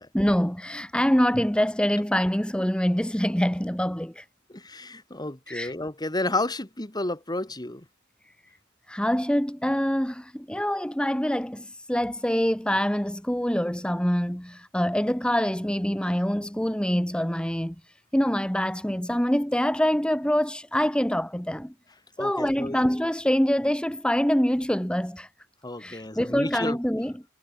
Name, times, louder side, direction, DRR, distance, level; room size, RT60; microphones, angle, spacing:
voice 1, 0.1-4.2 5.5-5.7 8.9-17.7 18.1-21.7 22.2-25.3 25.8-27.1, equal, 5° left, 1.6 m, -25 dB
voice 2, 4.5-7.8 22.2-22.8 25.6-26.8, left 2 dB, 20° left, 2.4 m, -31 dB
head